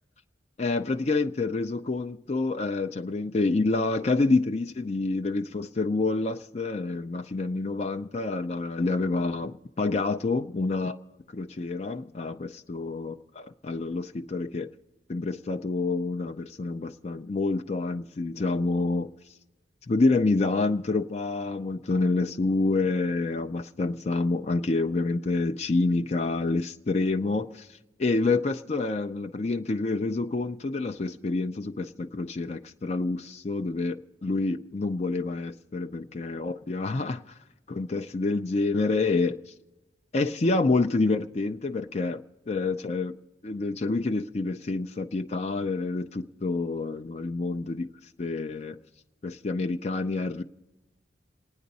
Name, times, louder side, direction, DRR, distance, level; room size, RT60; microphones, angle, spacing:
voice 1, 0.6-11.0 11.3-14.7 15.1-19.1 19.9-37.4 37.7-39.4 40.1-43.2 43.4-47.9 48.2-48.8 49.2-50.4, left 3 dB, 35° left, 0.5 m, -28 dB
28.5 x 9.6 x 4.1 m
head